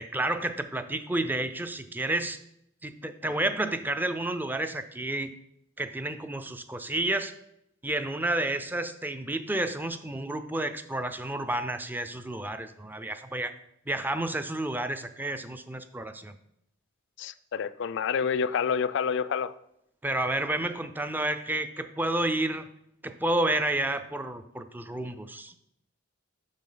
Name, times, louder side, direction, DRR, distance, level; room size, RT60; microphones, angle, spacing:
voice 1, 0.0-2.4 2.8-5.3 5.8-7.3 7.8-13.5 13.9-16.4 20.0-22.7 23.0-25.5, right 1 dB, 10° right, 10 dB, 0.4 m, -30 dB
voice 2, 17.2-19.5, left 6 dB, 65° left, 16 dB, 0.4 m, -28 dB
7.4 x 6.1 x 3.9 m, 0.76 s
head